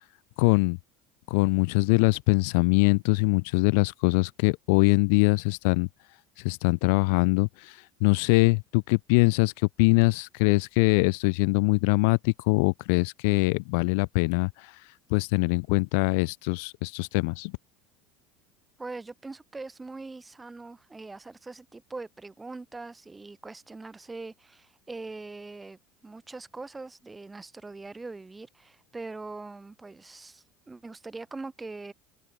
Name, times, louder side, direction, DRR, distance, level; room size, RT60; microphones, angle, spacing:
voice 1, 0.4-0.8 1.3-5.9 6.4-14.7 15.1-17.5, left 31 dB, 75° left, 0.4 m, -23 dB
voice 2, 18.8-31.9, right 3 dB, 15° right, 5.4 m, -42 dB
open air
supercardioid pair, 90°, 0 cm